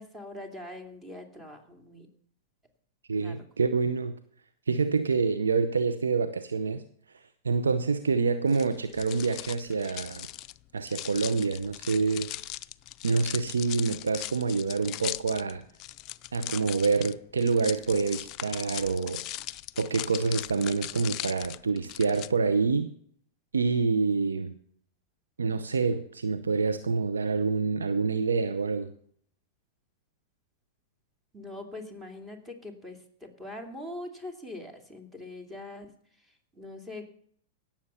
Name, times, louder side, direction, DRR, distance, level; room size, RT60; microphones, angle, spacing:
voice 1, 0.0-2.1 3.1-3.4 31.3-35.9 36.5-37.1, left 1 dB, 15° right, 4 dB, 2.6 m, -42 dB
voice 2, 3.1-4.1 4.7-6.8 7.4-10.3 10.7-12.3 13.0-15.6 16.3-19.2 19.8-22.9 23.5-24.5 25.4-28.9, right 4 dB, 85° right, 10 dB, 0.7 m, -27 dB
sound 1, 8.5-22.3, left 15 dB, 40° left, 0.4 m, -39 dB
17.5 x 7.4 x 5.6 m, 0.63 s
hypercardioid pair, 100°, 0 cm